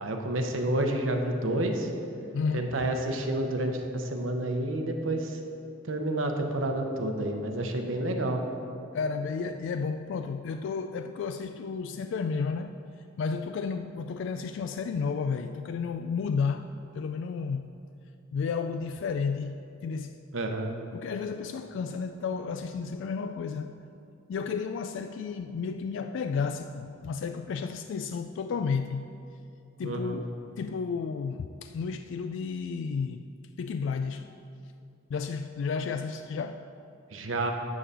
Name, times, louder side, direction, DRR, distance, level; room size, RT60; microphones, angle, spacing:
voice 1, 0.0-1.9 2.5-5.4 5.9-8.4 20.3-20.7 29.8-30.2 37.1-37.5, right 1 dB, 75° right, 4 dB, 0.9 m, -29 dB
voice 2, 2.3-2.8 8.9-12.7 13.2-16.7 16.9-17.7 18.3-20.2 20.9-23.9 24.3-29.1 29.8-33.3 33.6-34.3 35.1-36.7, left 5 dB, 65° left, 8 dB, 0.3 m, -32 dB
11.0 x 3.8 x 6.8 m, 2.6 s
head